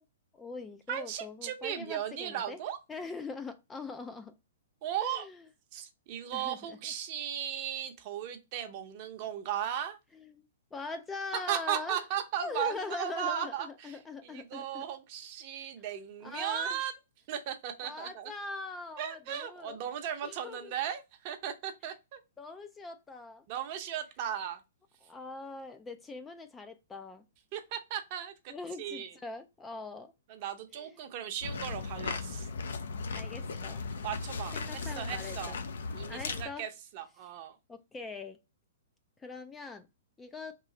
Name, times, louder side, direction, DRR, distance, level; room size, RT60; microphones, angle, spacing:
voice 1, 0.3-2.6 2.9-4.3 5.0-5.4 6.3-6.9 10.1-10.4 10.7-12.0 12.4-14.9 16.2-16.8 17.8-19.8 20.2-20.7 22.4-23.5 25.0-27.3 28.5-30.1 30.7-30.9 33.1-33.8 34.5-35.6 36.1-36.7 37.7-38.4 39.2-39.9 40.2-40.6, left 3 dB, 15° left, 0.3 m, -42 dB
voice 2, 0.9-2.8 4.8-5.3 5.7-10.0 11.3-17.0 17.3-18.3 19.0-22.2 23.5-24.6 27.5-29.2 30.3-32.5 34.0-35.6 35.9-37.6, right 10 dB, 45° right, 0.7 m, -36 dB
sound 1, 31.4-36.5, left 4 dB, 70° left, 0.5 m, -37 dB
3.0 x 2.3 x 3.7 m
hypercardioid pair, 125°, 0 cm